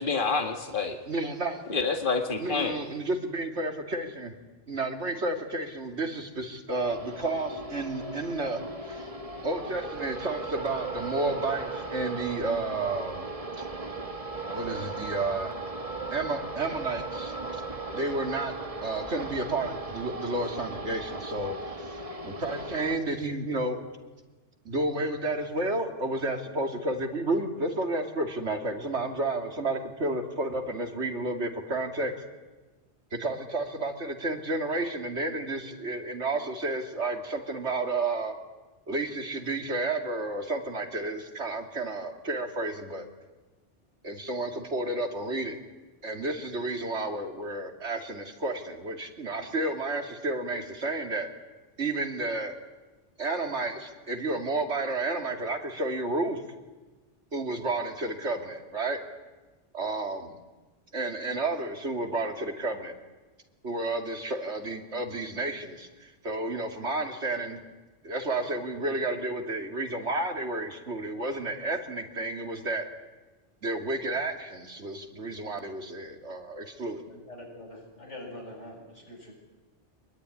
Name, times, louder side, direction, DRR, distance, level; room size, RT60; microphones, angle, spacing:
voice 1, 0.0-1.0 1.7-2.8, left 4 dB, 45° left, 3 dB, 2.2 m, -28 dB
voice 2, 1.1-1.6 2.4-4.1 4.7-9.1 9.4-13.3 14.5-15.6 16.1-17.6 17.9-18.5 18.8-21.9 22.2-23.8 24.6-32.1 33.1-38.3 38.9-43.1 44.0-45.6 46.0-51.3 51.8-52.5 53.2-56.4 57.3-59.0 59.7-60.4 60.9-63.0 63.6-67.6 68.0-72.9 73.6-77.0, right 2 dB, 75° right, 4 dB, 2.9 m, -31 dB
sound 1, 6.7-23.0, right 3 dB, 30° right, 1.8 m, -37 dB
voice 3, 77.0-79.3, left 1 dB, 85° left, 1 dB, 8.0 m, -44 dB
25.5 x 21.5 x 9.9 m, 1.2 s
omnidirectional pair, 1.2 m